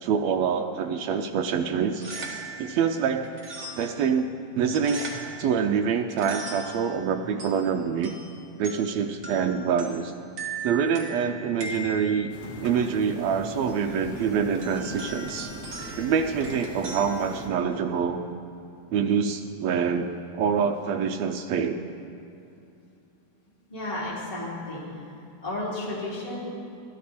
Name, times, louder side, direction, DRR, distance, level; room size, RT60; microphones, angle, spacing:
voice 1, 0.0-2.0 2.6-3.3 3.8-5.0 5.4-8.1 8.6-10.1 10.6-12.3 12.6-15.5 16.0-18.2 18.9-20.1 20.3-21.8, right 6 dB, 85° right, 5 dB, 1.5 m, -26 dB
sound 1, 1.8-18.1, right 2 dB, 35° right, 1.3 m, -41 dB
sound 2, 12.3-17.5, equal, 30° left, 2.1 m, -40 dB
voice 2, 23.7-25.1 25.4-26.4, left 2 dB, 10° left, -7 dB, 3.0 m, -33 dB
16.0 x 13.0 x 4.2 m, 2.7 s
omnidirectional pair, 3.7 m